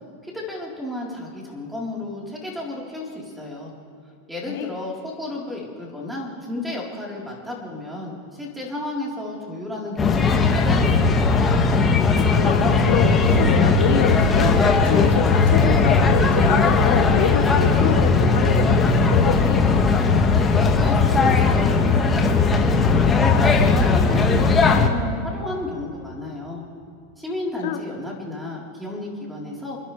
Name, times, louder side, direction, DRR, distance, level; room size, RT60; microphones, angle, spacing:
voice 1, 0.2-3.7 4.3-11.0 20.5-23.5 23.9-26.6 27.2-29.8, left 2 dB, 5° right, -3 dB, 3.9 m, -33 dB
sound 1, 10.0-24.9, left 4 dB, 20° left, 1.7 m, -18 dB
voice 2, 12.1-19.7 27.6-27.8, left 9 dB, 70° left, 5 dB, 1.4 m, -26 dB
28.5 x 10.5 x 3.4 m, 2.7 s
hypercardioid pair, 110°, 0 cm